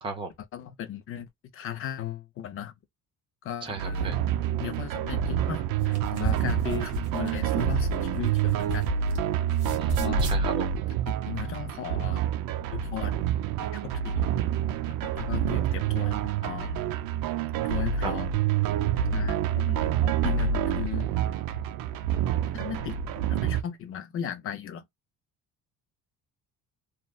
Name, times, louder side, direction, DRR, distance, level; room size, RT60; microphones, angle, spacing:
voice 1, 0.0-0.3 3.6-4.2 9.8-10.7 18.0-18.1, right 4 dB, 15° right, 0.6 m, -35 dB
voice 2, 0.5-1.3 1.5-2.7 3.4-4.2 4.6-8.9 10.0-10.3 11.1-12.2 12.7-13.1 13.6-14.3 15.0-16.7 17.6-18.3 19.1-21.1 22.5-24.9, left 10 dB, 40° left, 0.5 m, -37 dB
sound 1, 3.8-23.6, right 9 dB, 85° right, 0.6 m, -27 dB
sound 2, 5.7-9.2 9.5-10.4, equal, 60° right, 1.6 m, -34 dB
3.2 x 2.4 x 2.2 m
cardioid pair, 175°, 33 cm